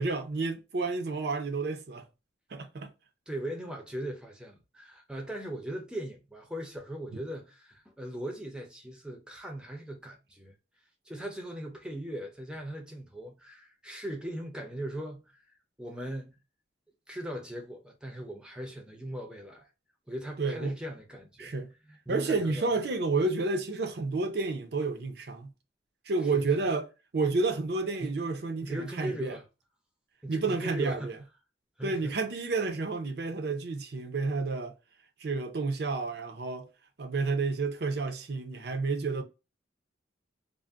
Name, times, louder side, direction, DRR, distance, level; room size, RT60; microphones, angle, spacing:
voice 1, 0.0-2.1 2.5-2.9 20.4-20.7 21.4-21.7 22.1-25.5 26.0-26.8 27.1-29.4 30.3-31.2 31.8-34.7 35.2-36.7 37.0-39.2, right 3 dB, 60° right, 0.5 m, -30 dB
voice 2, 3.3-10.5 11.1-15.3 15.8-16.4 17.1-19.7 20.1-21.6 21.9-22.7 26.3-26.5 28.0-28.3 28.6-29.4 30.2-31.2 31.8-32.2, right 1 dB, 5° right, 0.5 m, -39 dB
2.5 x 2.0 x 3.3 m
head